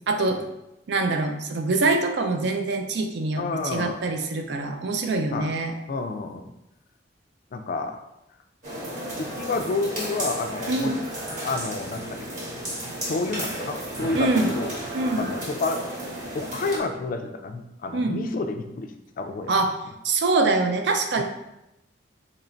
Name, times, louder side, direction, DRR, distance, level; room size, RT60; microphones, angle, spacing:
voice 1, 0.1-0.4 0.9-3.4 3.7-5.7 10.7-11.0 14.1-14.5 14.9-15.3 17.9-18.2 19.5-19.7 20.0-21.2, right 3 dB, 60° right, 5 dB, 0.4 m, -24 dB
voice 2, 3.4-4.0 5.3-5.5 5.9-6.4 7.5-8.0 9.2-10.9 11.4-12.3 13.0-14.8 15.2-15.8 16.3-19.6 21.2-21.3, left 3 dB, 45° left, 6 dB, 0.3 m, -29 dB
sound 1, 8.6-16.8, right 1 dB, 45° right, 1.1 m, -33 dB
2.9 x 2.5 x 4.3 m, 0.89 s
head